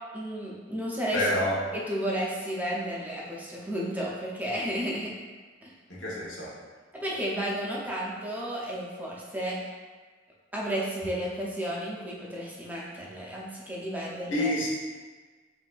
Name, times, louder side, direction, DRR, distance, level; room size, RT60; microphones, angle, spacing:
voice 1, 0.1-1.2 1.7-5.1 5.6-5.7 6.9-9.7 10.5-14.5, equal, 10° right, -5 dB, 0.5 m, -32 dB
voice 2, 1.1-1.6 5.9-6.6 14.3-14.7, left 1 dB, 80° left, -5 dB, 1.0 m, -28 dB
6.0 x 2.7 x 2.4 m, 1.4 s
head